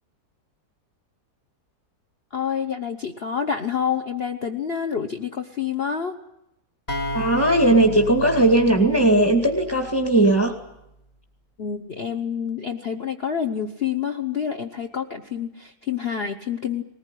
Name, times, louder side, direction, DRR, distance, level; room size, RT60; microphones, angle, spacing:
voice 1, 2.3-6.1 11.6-16.8, left 7 dB, 40° left, 5 dB, 1.2 m, -28 dB
sound 1, 6.9-10.5, right 1 dB, 25° left, 2.4 m, -34 dB
voice 2, 7.1-10.6, right 2 dB, 10° left, 4 dB, 2.1 m, -18 dB
20.5 x 19.5 x 9.9 m, 0.83 s
omnidirectional pair, 1.7 m